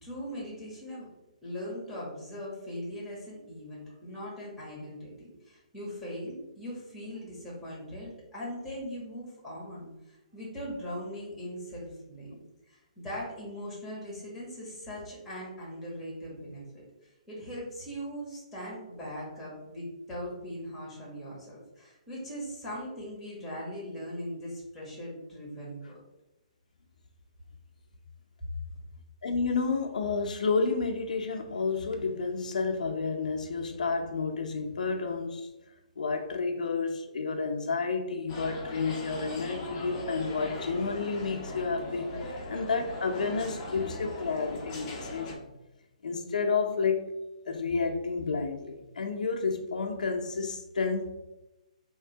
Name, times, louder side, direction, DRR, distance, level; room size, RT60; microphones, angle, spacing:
voice 1, 0.0-1.1 1.4-26.0 28.4-28.5, equal, ahead, -6 dB, 1.5 m, -40 dB
voice 2, 29.2-35.5 36.0-45.4 46.0-47.1 47.5-51.1, left 4 dB, 80° left, 3 dB, 0.7 m, -30 dB
sound 1, 38.3-45.3, left 2 dB, 20° left, 0.8 m, -39 dB
3.6 x 3.1 x 4.5 m, 0.97 s
hypercardioid pair, 165°, 4 cm